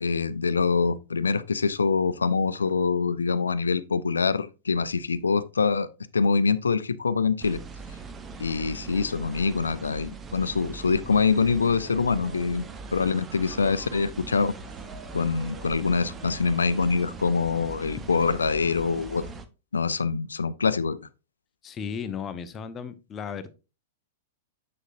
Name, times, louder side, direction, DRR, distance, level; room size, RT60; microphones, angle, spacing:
voice 1, 0.0-5.9 6.1-7.6 8.4-12.6 12.9-14.5 15.1-19.3 19.7-21.0, left 5 dB, 80° left, 0.6 m, -25 dB
sound 1, 7.4-19.5, right 4 dB, 20° right, 0.9 m, -41 dB
sound 2, 12.2-17.4, right 4 dB, 45° right, 1.6 m, -50 dB
voice 2, 21.6-23.5, left 7 dB, 25° left, 0.9 m, -35 dB
7.6 x 6.3 x 2.6 m
figure-of-eight pair, 100°, 0 cm